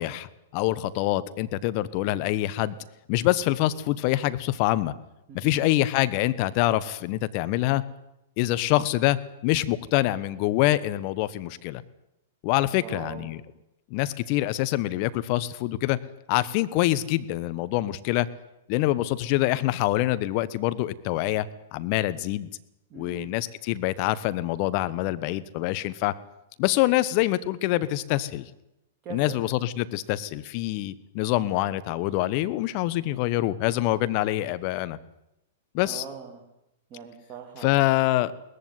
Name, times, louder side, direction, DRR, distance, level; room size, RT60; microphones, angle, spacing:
voice 1, 0.0-2.8 3.1-4.9 5.3-7.8 8.4-11.8 12.4-13.4 13.9-16.0 16.3-18.3 18.7-22.5 22.9-26.1 26.6-28.5 29.1-35.0 35.7-36.0 37.6-38.5, left 16 dB, 45° left, 15 dB, 1.2 m, -25 dB
voice 2, 5.3-5.6 12.7-13.3 22.9-23.3 29.0-29.4 35.8-36.4 36.9-37.8, right 7 dB, 35° right, 0 dB, 3.1 m, -41 dB
19.0 x 14.5 x 9.7 m, 0.87 s
hypercardioid pair, 110°, 0 cm